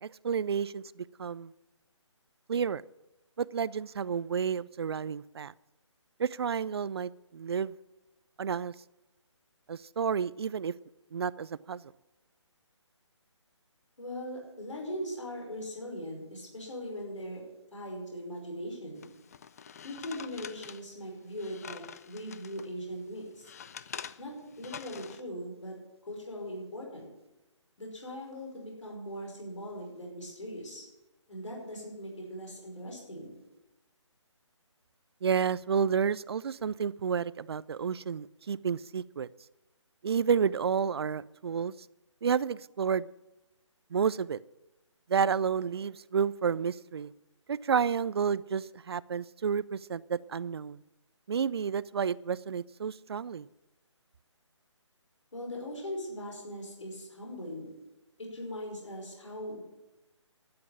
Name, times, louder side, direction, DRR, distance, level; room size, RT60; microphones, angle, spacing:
voice 1, 0.0-1.5 2.5-2.8 3.4-5.5 6.2-7.7 8.4-8.7 9.7-10.7 11.1-11.8 35.2-39.3 40.0-41.7 42.2-43.1 43.9-44.4 45.1-47.1 47.5-50.8 51.3-53.5, right 7 dB, 55° right, 21 dB, 0.4 m, -30 dB
voice 2, 14.0-17.4 17.7-19.0 19.8-23.5 24.2-25.8 26.1-27.1 27.8-30.9 31.3-33.3 55.3-57.7 58.2-59.6, equal, 75° left, -1 dB, 5.4 m, -40 dB
sound 1, 19.0-22.7 23.1-25.2, left 7 dB, 30° left, 0.4 m, -46 dB
12.0 x 7.8 x 8.5 m, 0.98 s
figure-of-eight pair, 150°, 16 cm